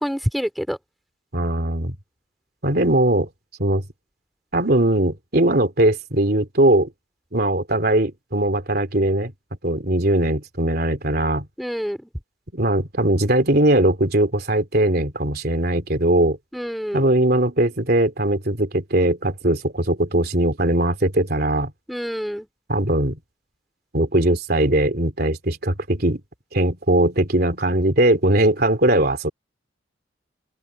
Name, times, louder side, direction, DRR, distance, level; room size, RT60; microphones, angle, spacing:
voice 1, 0.0-0.8 11.6-12.1 16.5-17.0 21.9-22.5, equal, ahead, 3.7 m, -26 dB
voice 2, 1.3-1.9 2.6-3.3 3.6-3.8 4.5-6.9 7.3-9.3 9.6-11.5 12.5-16.4 16.9-21.7 22.7-23.2 23.9-26.2 26.5-29.3, right 1 dB, 55° right, 3.2 m, -20 dB
open air
head